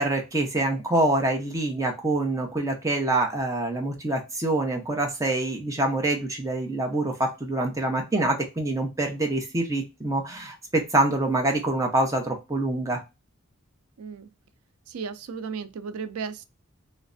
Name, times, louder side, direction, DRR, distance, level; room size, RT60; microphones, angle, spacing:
voice 1, 0.0-13.0, right 2 dB, 15° right, 0.7 m, -25 dB
voice 2, 14.0-14.3 14.9-16.4, right 5 dB, 90° right, 0.4 m, -35 dB
3.2 x 3.1 x 2.5 m
head